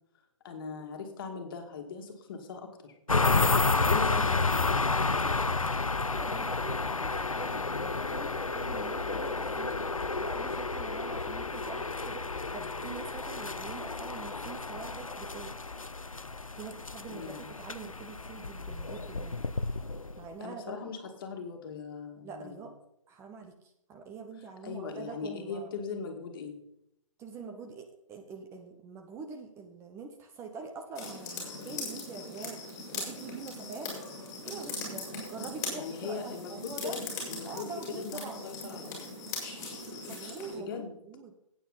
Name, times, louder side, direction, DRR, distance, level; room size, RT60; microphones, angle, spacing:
voice 1, 0.4-2.9 3.7-5.1 17.1-17.5 20.4-22.7 24.6-26.6 35.7-37.0 37.3-39.1 40.6-40.9, left 5 dB, 40° left, 4 dB, 2.4 m, -40 dB
sound 1, 3.1-20.3, left 3 dB, 90° left, 0.7 m, -31 dB
voice 2, 6.1-9.9 10.2-15.5 16.6-19.4 20.2-20.9 22.2-22.7 23.1-25.7 27.2-32.6 32.9-33.9 34.4-37.0 37.4-38.5 40.0-41.3, right 4 dB, 15° right, 4 dB, 1.0 m, -44 dB
sound 2, 30.9-40.6, left 3 dB, 20° left, 5.5 m, -40 dB
15.0 x 9.1 x 4.1 m, 0.80 s
figure-of-eight pair, 135°, 17 cm